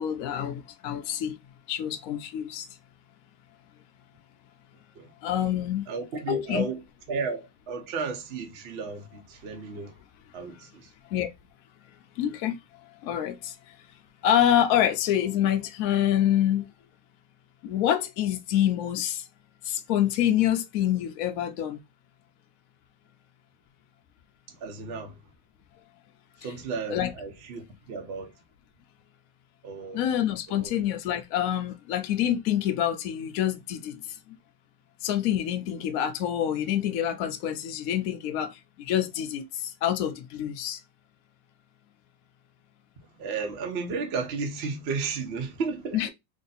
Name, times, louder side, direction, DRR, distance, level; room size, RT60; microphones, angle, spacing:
voice 1, 0.0-1.4 1.7-2.7 5.2-5.9 6.3-6.7 11.1-11.3 12.2-12.5 13.0-13.5 14.2-16.7 17.6-19.2 19.7-21.8 26.9-27.1 29.9-34.0 35.0-40.8 45.9-46.1, left 11 dB, 90° left, 0.7 m, -26 dB
voice 2, 5.9-6.8 7.1-9.9 10.3-10.9 24.5-25.2 26.4-28.3 29.6-30.0 30.5-30.7 43.2-46.1, right 4 dB, 55° right, 0.7 m, -33 dB
3.3 x 2.6 x 3.9 m
omnidirectional pair, 2.2 m